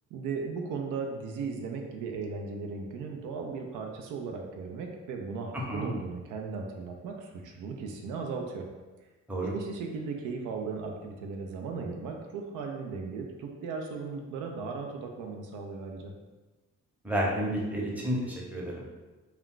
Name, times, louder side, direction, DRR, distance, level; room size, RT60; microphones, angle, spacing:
voice 1, 0.1-8.7 9.4-16.1, right 4 dB, 90° right, 2 dB, 0.5 m, -37 dB
voice 2, 17.0-18.9, equal, 5° right, -3 dB, 0.7 m, -30 dB
2.3 x 2.2 x 3.7 m, 1.2 s
cardioid pair, 90°, 30 cm